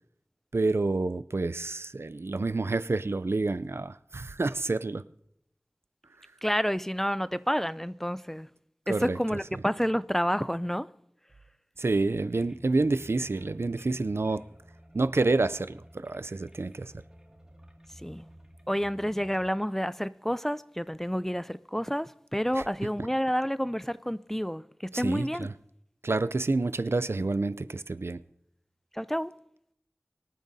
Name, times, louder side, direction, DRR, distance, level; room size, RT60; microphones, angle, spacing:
voice 1, 0.5-5.0 8.9-9.6 11.8-14.5 14.9-16.9 22.6-22.7 23.0-23.1 24.9-25.5 26.0-28.2, right 3 dB, 80° right, 0.4 m, -28 dB
voice 2, 6.4-8.5 8.9-10.9 18.0-18.2 18.7-24.6 24.9-25.5 28.9-29.3, equal, 10° left, 0.4 m, -29 dB
sound 1, 12.3-19.5, equal, 15° right, 2.2 m, -53 dB
24.0 x 9.0 x 2.7 m
wide cardioid pair, 40°, 4 cm